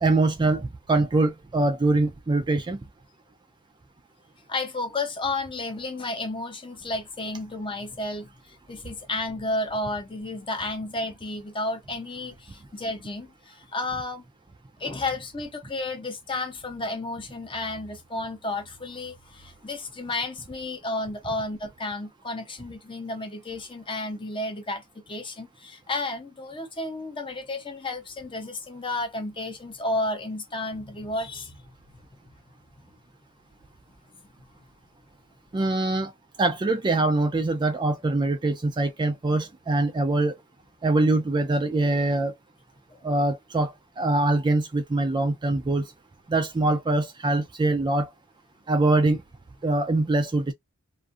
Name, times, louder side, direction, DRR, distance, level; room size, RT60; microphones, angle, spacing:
voice 1, 0.0-2.8 35.5-36.1 36.4-40.3 40.8-42.3 43.0-43.7 44.0-45.8 46.3-48.1 48.7-49.2 49.6-50.5, right 2 dB, 20° right, 0.3 m, -23 dB
voice 2, 4.5-14.2 14.8-31.6 42.9-43.0, left 2 dB, 25° left, 0.7 m, -32 dB
2.5 x 2.4 x 2.4 m
head